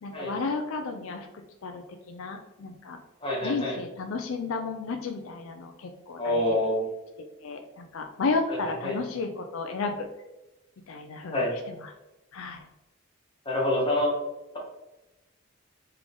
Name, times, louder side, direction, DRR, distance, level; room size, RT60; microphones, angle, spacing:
voice 1, 0.0-1.3 1.6-3.0 3.4-6.4 7.4-10.1 10.9-11.4 11.8-11.9 12.3-12.6, left 4 dB, 75° left, 5 dB, 0.4 m, -32 dB
voice 2, 3.2-3.8 6.2-6.9 8.5-9.0 11.3-11.5 13.4-14.1, left 1 dB, 25° left, -3 dB, 1.2 m, -27 dB
3.8 x 3.3 x 3.6 m, 1.0 s
head